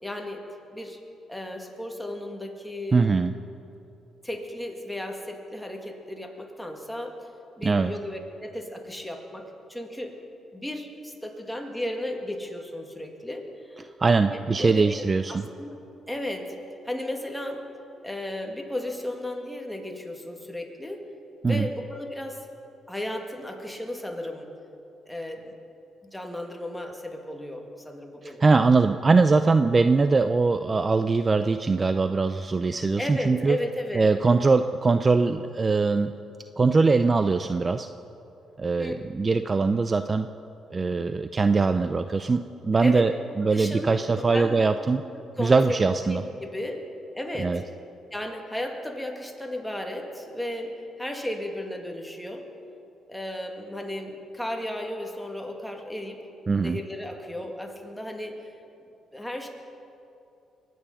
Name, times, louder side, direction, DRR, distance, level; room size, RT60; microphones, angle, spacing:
voice 1, 0.0-0.5 0.7-1.0 1.3-3.1 4.2-7.3 7.6-10.2 10.5-13.9 14.3-15.0 15.3-15.8 16.1-16.6 16.8-17.7 18.0-21.1 21.4-22.5 22.9-24.5 25.1-25.6 26.0-28.4 33.0-34.2 38.8-38.9 42.8-43.1 43.5-43.9 44.3-44.6 45.1-46.9 47.1-47.6 48.1-52.5 53.1-56.2 56.6-58.4 59.1-59.5, left 1 dB, 5° left, 2 dB, 2.3 m, -34 dB
voice 2, 2.9-3.3 7.6-7.9 14.0-15.5 21.4-21.7 28.2-33.6 33.9-36.1 36.6-37.9 38.6-40.3 40.7-43.1 43.4-45.0 45.4-46.2 47.4-47.6 56.5-56.8, right 4 dB, 30° right, 10 dB, 0.5 m, -22 dB
23.0 x 9.5 x 5.6 m, 2.7 s
cardioid pair, 75°, 0 cm